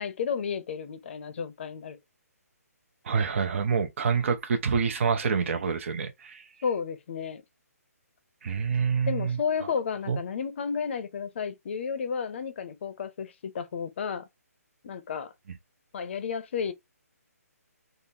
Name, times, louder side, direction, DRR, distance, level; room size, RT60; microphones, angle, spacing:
voice 1, 0.0-2.0 6.6-7.4 9.1-14.3 14.8-15.3 15.9-16.7, left 6 dB, 45° left, 0.6 m, -32 dB
voice 2, 3.0-6.5 8.4-9.4 10.1-10.2, right 6 dB, 50° right, 0.6 m, -27 dB
3.7 x 2.0 x 2.7 m
hypercardioid pair, 155°, 9 cm